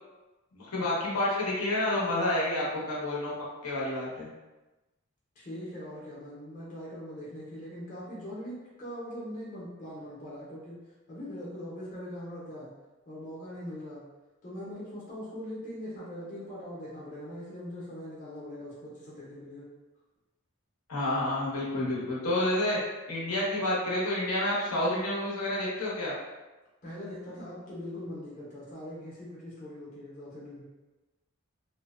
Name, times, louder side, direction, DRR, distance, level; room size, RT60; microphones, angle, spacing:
voice 1, 0.5-3.3 3.6-4.3 20.9-22.8 23.1-26.1, left 1 dB, 90° left, -5 dB, 0.8 m, -29 dB
voice 2, 5.4-10.8 11.1-12.7 13.1-14.0 14.4-19.7 26.8-30.6, left 1 dB, 35° left, -7 dB, 0.6 m, -41 dB
2.6 x 2.0 x 2.3 m, 1.1 s
head